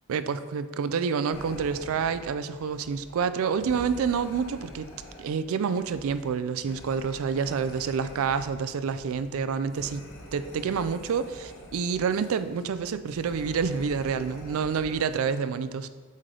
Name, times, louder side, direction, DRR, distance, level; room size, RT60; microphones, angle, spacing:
voice 1, 0.1-4.9 5.2-10.0 10.3-15.9, right 6 dB, 65° right, 12 dB, 0.3 m, -28 dB
sound 1, 1.3-15.2, left 1 dB, 65° left, 1.0 m, -46 dB
8.1 x 3.3 x 3.8 m, 1.5 s
head